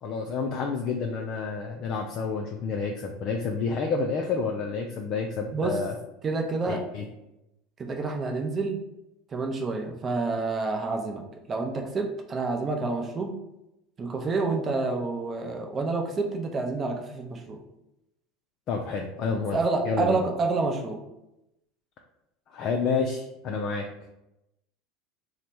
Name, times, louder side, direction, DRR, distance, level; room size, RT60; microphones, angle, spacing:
voice 1, 0.0-5.9 6.7-7.1 18.7-19.6 19.9-20.2 22.5-23.8, left 4 dB, 45° left, 2 dB, 0.4 m, -29 dB
voice 2, 6.2-6.8 7.8-8.8 9.3-13.4 14.0-17.6 19.5-21.0, right 3 dB, 30° right, 3 dB, 0.6 m, -28 dB
3.2 x 2.0 x 4.2 m, 0.89 s
figure-of-eight pair, 75°, 0 cm